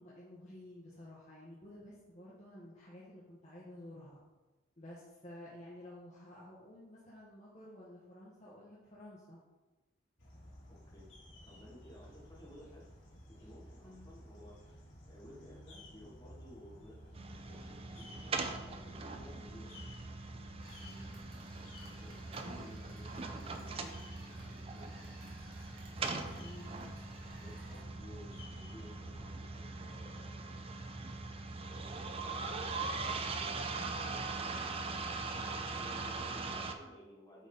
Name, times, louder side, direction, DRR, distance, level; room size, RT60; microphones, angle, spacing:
voice 1, 0.0-4.2 4.8-9.4 13.8-14.1 20.8-21.1 26.3-26.7 35.7-36.0, left 1 dB, 35° left, -7 dB, 1.4 m, -52 dB
sound 1, 10.2-29.3, equal, 75° left, 2.2 m, -55 dB
voice 2, 10.7-11.1 11.4-12.9 13.3-19.9 21.8-24.0 24.3-25.1 26.0-26.4 27.2-30.5 32.1-34.9 35.6-37.5, equal, 20° left, -6 dB, 2.2 m, -56 dB
sound 2, 17.1-36.7, right 3 dB, 30° right, 0.5 m, -41 dB
sound 3, 20.6-27.8, right 1 dB, 50° right, 1.9 m, -60 dB
8.8 x 4.2 x 4.1 m, 1.1 s
head